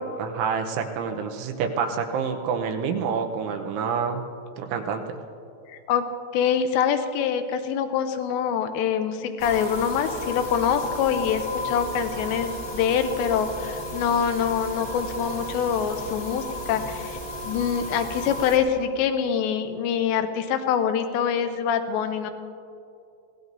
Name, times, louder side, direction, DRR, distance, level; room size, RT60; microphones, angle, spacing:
voice 1, 0.2-4.2 4.6-5.2, right 6 dB, 80° right, 4 dB, 3.2 m, -27 dB
voice 2, 5.7-6.1 6.3-17.2 17.4-22.3, left 7 dB, 80° left, 8 dB, 2.7 m, -25 dB
sound 1, 9.4-18.6, left 1 dB, 25° left, 0.8 m, -34 dB
25.0 x 18.0 x 2.7 m, 2.6 s
omnidirectional pair, 5.6 m